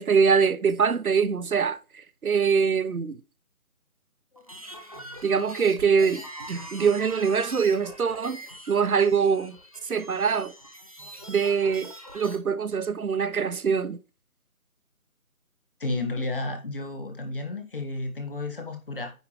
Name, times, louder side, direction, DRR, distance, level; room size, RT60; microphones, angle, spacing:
voice 1, 0.0-3.2 5.2-8.4 8.7-9.6 9.8-10.5 11.3-14.0, right 6 dB, 80° right, 0.9 m, -24 dB
sound 1, 4.4-12.4, equal, 25° right, 0.9 m, -43 dB
voice 2, 15.8-19.1, left 2 dB, 40° left, 1.7 m, -32 dB
9.5 x 3.6 x 4.6 m
figure-of-eight pair, 175°, 43 cm